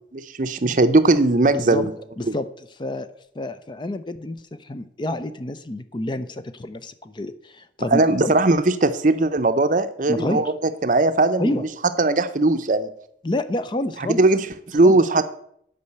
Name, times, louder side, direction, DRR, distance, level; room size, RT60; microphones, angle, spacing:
voice 1, 0.1-1.9 2.3-2.4 7.9-10.5 10.8-11.7 12.0-12.9 14.2-15.2, right 2 dB, 45° right, 10 dB, 0.6 m, -19 dB
voice 2, 1.5-1.9 2.2-3.1 3.4-8.3 10.1-10.5 11.4-11.6 13.2-14.2 14.8-15.0, left 1 dB, 25° left, 12 dB, 0.5 m, -28 dB
8.5 x 5.6 x 7.8 m, 0.70 s
head